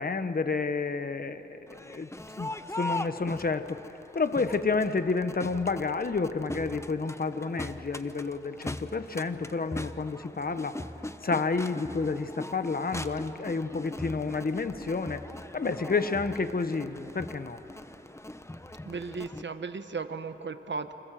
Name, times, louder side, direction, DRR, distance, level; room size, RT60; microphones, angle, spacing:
voice 1, 0.0-2.1 2.4-3.8 4.1-10.8 11.2-15.3 15.5-17.6, left 4 dB, 50° left, 10 dB, 1.2 m, -30 dB
Crowd, 1.7-19.4, left 1 dB, 15° left, 1.0 m, -41 dB
voice 2, 18.8-20.9, right 4 dB, 70° right, 9 dB, 1.4 m, -36 dB
29.5 x 26.0 x 7.6 m, 3.0 s
wide cardioid pair, 60°, 20 cm